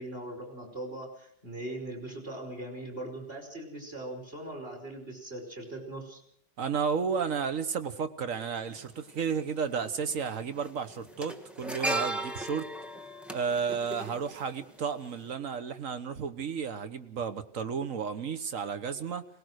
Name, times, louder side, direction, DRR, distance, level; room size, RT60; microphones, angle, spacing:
voice 1, 0.0-6.2, right 1 dB, 30° right, 2 dB, 5.5 m, -40 dB
voice 2, 6.6-12.7 13.3-19.2, right 6 dB, 50° right, 11 dB, 1.5 m, -32 dB
sound 1, 8.7-8.8 10.0-10.3 10.6-14.8 15.1-15.3, right 2 dB, ahead, 1.2 m, -35 dB
21.5 x 19.5 x 6.5 m, 0.69 s
omnidirectional pair, 2.0 m